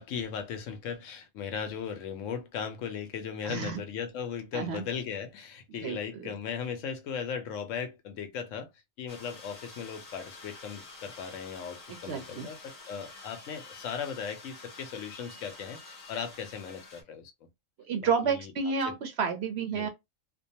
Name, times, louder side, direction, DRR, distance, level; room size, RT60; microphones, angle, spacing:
voice 1, 0.0-8.7 9.0-17.3 18.0-18.5 18.8-18.9 19.7-19.9, left 7 dB, 75° left, 0.9 m, -37 dB
voice 2, 3.4-3.8 4.5-4.8 5.8-6.3 11.9-12.5 17.9-19.9, right 5 dB, 65° right, 0.7 m, -31 dB
sound 1, 9.1-17.0, left 3 dB, 40° left, 0.7 m, -49 dB
2.5 x 2.2 x 2.7 m
omnidirectional pair, 1.4 m